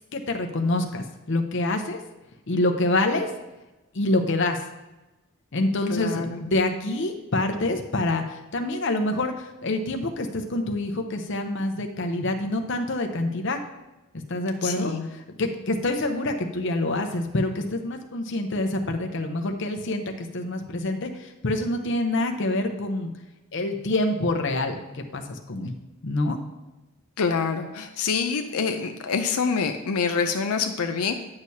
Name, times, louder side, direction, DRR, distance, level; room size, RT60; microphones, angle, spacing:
voice 1, 0.1-2.0 2.5-3.3 3.9-4.6 5.5-13.6 14.1-23.1 23.5-25.8 26.0-26.4, left 2 dB, 55° left, 5 dB, 0.7 m, -26 dB
voice 2, 5.9-6.4 14.6-15.1 27.2-31.1, left 5 dB, 85° left, 5 dB, 0.5 m, -26 dB
9.6 x 6.4 x 2.8 m, 1.0 s
head